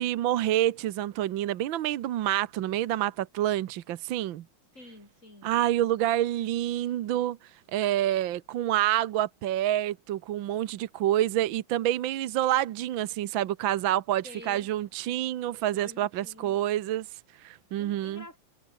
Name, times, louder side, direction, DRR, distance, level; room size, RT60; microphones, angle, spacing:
voice 1, 0.0-4.4 5.4-18.2, right 13 dB, 70° right, 1.6 m, -28 dB
voice 2, 4.7-5.5 14.2-14.7 15.7-16.6 17.8-18.4, left 1 dB, 35° left, 8.5 m, -48 dB
omnidirectional pair, 2.3 m